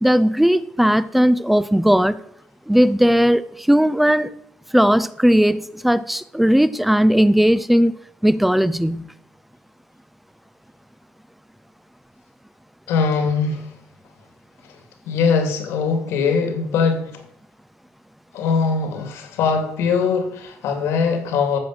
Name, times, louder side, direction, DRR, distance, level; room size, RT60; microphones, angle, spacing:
voice 1, 0.0-2.2 2.7-4.3 4.7-7.9 8.2-9.1, equal, 5° right, 0.5 m, -17 dB
voice 2, 12.9-13.7 15.1-17.2 18.3-21.6, left 5 dB, 80° left, 2.9 m, -21 dB
12.5 x 6.6 x 7.9 m
cardioid pair, 125°, 4 cm